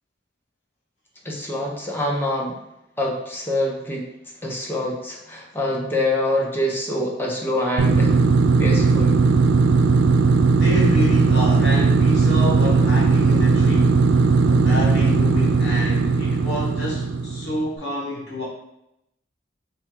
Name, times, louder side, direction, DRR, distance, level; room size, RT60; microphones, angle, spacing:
voice 1, 1.2-2.6 3.0-4.1 4.4-8.2 8.6-9.2, left 1 dB, 10° left, -2 dB, 0.7 m, -25 dB
sound 1, 7.8-17.6, right 4 dB, 75° right, 0.3 m, -17 dB
voice 2, 10.5-18.4, equal, 60° left, -4 dB, 0.9 m, -28 dB
3.5 x 2.3 x 4.3 m, 0.83 s
head